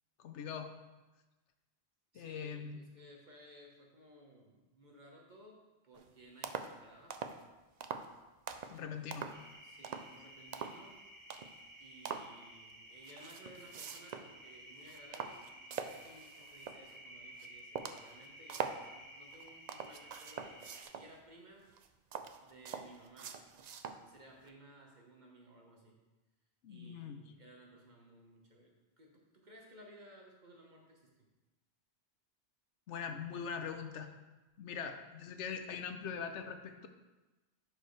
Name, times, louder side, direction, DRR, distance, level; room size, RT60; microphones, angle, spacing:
voice 1, 0.2-0.7 2.1-2.8 8.7-9.3 26.6-27.2 32.9-34.1 34.6-36.9, left 6 dB, 85° left, 7 dB, 1.0 m, -42 dB
voice 2, 2.1-5.6 5.8-7.2 9.6-11.0 11.8-21.7 22.4-23.4 24.0-26.0 26.7-31.3, right 1 dB, 40° right, -1 dB, 1.3 m, -58 dB
sound 1, 5.9-6.1 6.4-6.7 7.1-7.4 7.8-8.1 8.5-8.8 9.1-9.5 9.8-10.1 10.5-10.8 11.3-11.6 12.0-12.3 13.0-14.3 14.7-16.9 17.4-17.5 17.7-18.8 19.3-21.1 21.7-24.0 24.5-24.6, right 6 dB, 60° right, 0.4 m, -43 dB
sound 2, 9.3-20.8, right 1 dB, 20° right, 0.9 m, -54 dB
11.0 x 4.8 x 3.2 m, 1.1 s
omnidirectional pair, 1.2 m